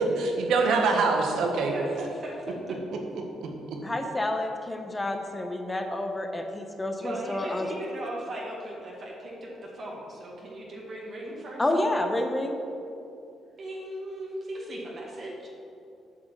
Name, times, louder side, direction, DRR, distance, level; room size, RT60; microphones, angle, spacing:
voice 1, 0.0-1.7 3.4-3.8, right 3 dB, 75° right, 2 dB, 1.3 m, -25 dB
voice 2, 1.1-2.7 4.4-4.5 7.0-11.7 13.6-15.5, right 1 dB, 50° right, -3 dB, 1.8 m, -38 dB
voice 3, 3.8-7.7 11.6-12.5, left 1 dB, 20° left, 5 dB, 1.0 m, -29 dB
8.5 x 5.1 x 7.5 m, 2.6 s
cardioid pair, 90°, 0 cm